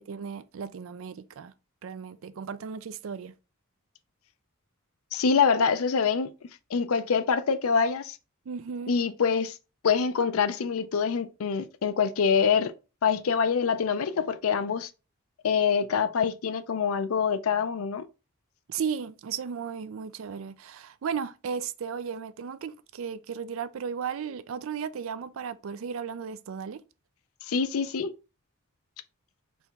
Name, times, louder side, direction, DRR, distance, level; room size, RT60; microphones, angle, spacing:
voice 1, 0.0-1.5 1.8-3.3 8.5-8.9 18.7-26.8, right 6 dB, 70° right, 0.4 m, -35 dB
voice 2, 5.1-6.3 6.7-8.2 8.9-9.6 9.8-12.7 13.0-14.9 15.4-18.0 27.5-28.1, left 6 dB, 85° left, 0.5 m, -25 dB
4.4 x 3.0 x 3.3 m
head